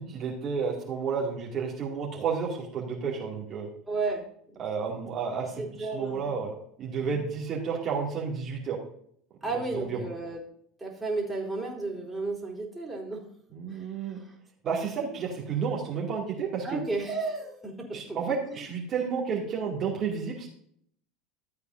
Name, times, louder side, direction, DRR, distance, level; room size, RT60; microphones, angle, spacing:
voice 1, 0.0-3.7 4.6-5.5 5.8-8.8 9.7-10.0 13.5-14.2 14.6-16.8 17.9-20.5, right 6 dB, 40° right, -3 dB, 2.5 m, -31 dB
voice 2, 3.9-4.6 5.6-6.2 7.0-7.2 9.4-10.4 10.8-13.2 13.7-14.3 16.6-18.2 18.5-18.7, right 3 dB, 10° right, -2 dB, 3.6 m, -33 dB
14.0 x 8.1 x 2.7 m, 0.65 s
hypercardioid pair, 75°, 0 cm